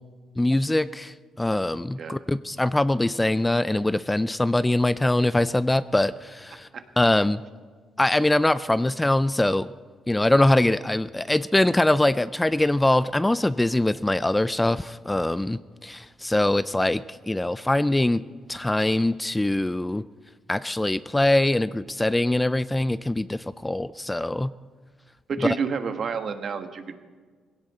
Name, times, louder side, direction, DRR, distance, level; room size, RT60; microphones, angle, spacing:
voice 1, 0.4-6.7 7.0-7.4 8.0-9.7 10.1-18.2 18.5-20.0 20.5-24.5 25.4-25.6, left 1 dB, 10° left, 15 dB, 0.4 m, -23 dB
voice 2, 25.3-27.0, right 5 dB, 55° right, 8 dB, 1.3 m, -29 dB
19.0 x 16.5 x 4.2 m, 1.5 s
cardioid pair, 90°, 0 cm